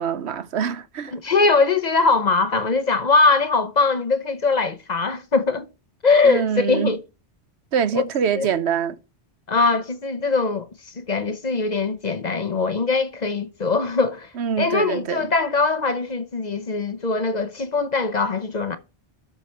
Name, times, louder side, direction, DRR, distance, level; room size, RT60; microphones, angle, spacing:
voice 1, 0.0-1.1 6.2-6.9 7.7-9.0 14.4-15.3, right 7 dB, 75° right, 1.1 m, -24 dB
voice 2, 1.1-5.7 6.0-7.0 7.9-8.0 8.4-8.5 9.5-10.7 11.0-14.3 14.6-18.8, left 4 dB, 40° left, 0.9 m, -21 dB
12.5 x 6.2 x 4.4 m
omnidirectional pair, 1.1 m